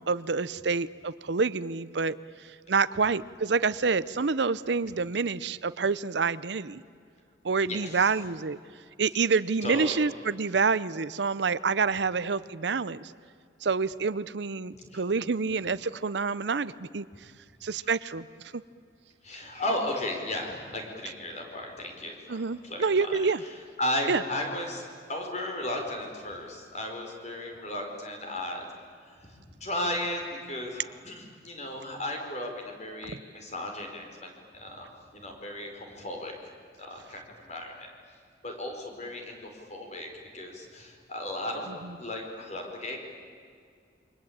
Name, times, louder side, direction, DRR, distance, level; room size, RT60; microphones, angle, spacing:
voice 1, 0.0-2.2 2.7-6.8 7.4-8.6 9.0-13.1 13.6-17.1 17.6-18.2 22.3-23.4 24.1-24.2, right 4 dB, 65° right, 16 dB, 0.7 m, -27 dB
voice 2, 7.6-8.1 9.6-10.0 14.7-15.0 17.8-17.9 19.2-22.4 22.6-28.6 29.1-36.5 36.8-37.9 38.4-41.7 42.0-43.0, left 1 dB, 40° left, 2 dB, 4.8 m, -35 dB
28.0 x 24.0 x 8.8 m, 2.2 s
head